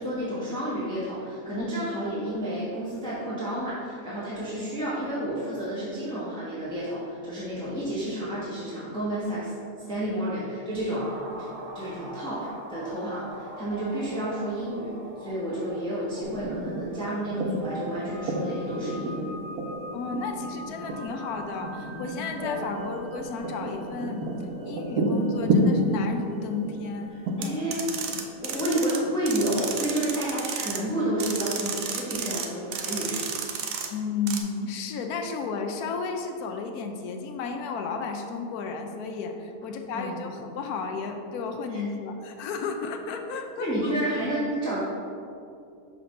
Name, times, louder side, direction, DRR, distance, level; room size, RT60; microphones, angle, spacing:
voice 1, 0.0-9.5 9.9-14.9 15.2-19.3 27.4-27.8 28.4-33.3 39.9-40.1 41.7-41.8 43.6-44.8, right 1 dB, 5° left, -10 dB, 1.1 m, -30 dB
sound 1, 10.9-28.1 28.4-28.5, equal, 50° right, 1.5 m, -43 dB
sound 2, 16.2-29.3, right 1 dB, 90° right, 1.2 m, -31 dB
voice 2, 19.9-24.3 24.6-27.1 27.4-27.6 33.9-43.9, left 4 dB, 85° left, 4 dB, 1.1 m, -33 dB
sound 3, 27.4-29.0 29.2-30.8 31.2-32.5 32.7-33.9 34.3-34.4, right 6 dB, 70° right, 1.0 m, -32 dB
5.9 x 3.3 x 5.2 m, 2.4 s
omnidirectional pair, 1.6 m